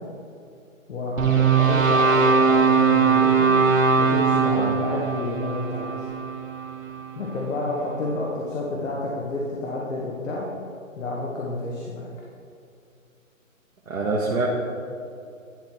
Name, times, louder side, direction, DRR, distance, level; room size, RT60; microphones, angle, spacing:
voice 1, 0.9-3.5 4.0-5.9 7.1-10.4 10.9-12.1, left 2 dB, 65° left, -3 dB, 1.4 m, -30 dB
sound 1, 1.2-7.4, right 5 dB, 70° right, 1.4 m, -20 dB
voice 2, 13.9-14.5, right 3 dB, 85° right, -4 dB, 1.3 m, -25 dB
10.5 x 3.8 x 4.6 m, 2.5 s
hypercardioid pair, 150°, 41 cm